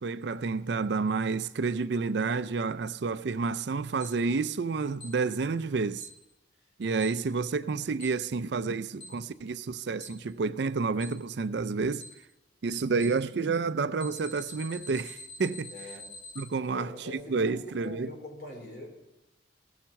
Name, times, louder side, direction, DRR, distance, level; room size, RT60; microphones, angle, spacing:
voice 1, 0.0-6.1 6.8-12.1 12.6-15.7 16.4-18.1, right 4 dB, 65° right, 0.4 m, -30 dB
Alarm, 4.0-4.1 5.0-5.1 6.0-6.1 7.0-7.1 8.0-8.1 9.0-9.1 10.0-10.1 11.0-11.1 12.0-12.1 13.0-13.1 14.0-16.4, left 2 dB, 25° left, 3.7 m, -44 dB
voice 2, 15.7-16.0 16.7-18.9, left 1 dB, 60° left, 4.2 m, -42 dB
16.5 x 7.3 x 5.8 m
head